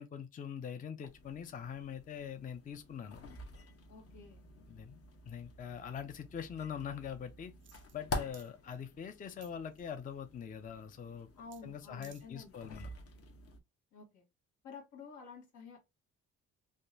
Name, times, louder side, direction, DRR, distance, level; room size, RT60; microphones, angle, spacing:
voice 1, 0.0-3.2 4.7-5.0 5.2-7.5 7.9-11.3 11.6-12.9, left 8 dB, 30° left, 0.4 m, -43 dB
sound 1, 1.0-13.6, left 2 dB, 50° left, 0.9 m, -48 dB
voice 2, 3.9-4.4 11.3-12.5 13.9-14.2 14.6-15.9, left 4 dB, 80° left, 1.4 m, -51 dB
sound 2, 7.6-8.0 8.3-8.5 9.4-10.0 11.5-11.6 11.9-12.3 12.7-12.8, right 9 dB, 40° right, 0.4 m, -59 dB
3.5 x 2.3 x 2.5 m
cardioid pair, 90°, 30 cm